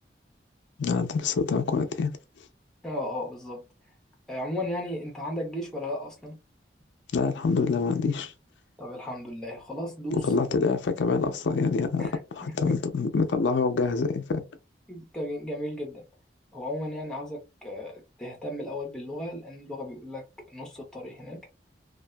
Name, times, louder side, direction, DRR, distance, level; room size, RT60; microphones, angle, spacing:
voice 1, 0.8-2.1 7.1-8.3 10.1-12.1 12.6-14.4, left 4 dB, 85° left, 0.4 m, -26 dB
voice 2, 2.8-3.7 4.3-6.4 8.8-10.3 12.0-12.8 14.9-16.0 16.5-21.4, left 1 dB, 5° left, 0.7 m, -35 dB
2.6 x 2.3 x 2.2 m
head